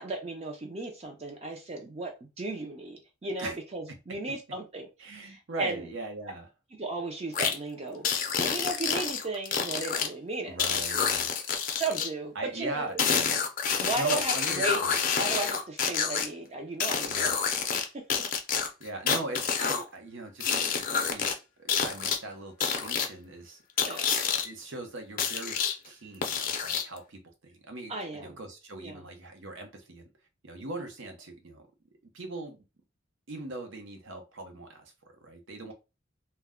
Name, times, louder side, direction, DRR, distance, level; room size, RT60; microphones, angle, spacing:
voice 1, 0.0-5.9 6.8-8.1 8.4-10.6 11.7-13.0 13.8-14.8 15.1-18.2 23.8-24.1 27.9-28.4 28.8-29.0, right 2 dB, 30° right, 0.4 m, -35 dB
voice 2, 5.0-6.5 10.5-11.5 12.3-13.2 13.9-15.0 17.0-17.3 18.8-21.3 21.6-23.6 24.4-25.6 25.8-30.1 30.4-31.7 32.1-32.6 33.3-35.7, right 2 dB, 70° right, 0.7 m, -40 dB
sound 1, 7.3-7.5 8.0-10.1 10.6-12.1 13.0-16.3 16.8-17.8 18.1-19.8 20.4-21.3 21.7-22.2 22.6-23.1 23.8-24.4 25.2-25.7 26.2-27.0, left 6 dB, 45° left, 0.5 m, -28 dB
2.2 x 2.1 x 3.5 m
head